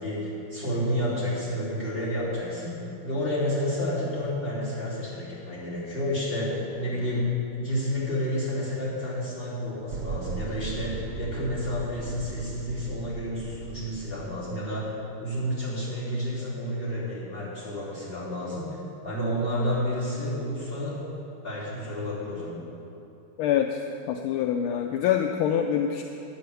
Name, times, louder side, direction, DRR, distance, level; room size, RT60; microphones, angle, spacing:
voice 1, 0.0-14.9 15.2-21.0 21.4-22.6, equal, 25° left, -9 dB, 3.3 m, -30 dB
sound 1, 9.9-14.5, right 5 dB, 85° right, 1.5 m, -37 dB
voice 2, 23.4-23.8 24.1-26.0, left 9 dB, 80° left, 4 dB, 1.4 m, -25 dB
11.0 x 7.8 x 6.9 m, 2.8 s
omnidirectional pair, 2.3 m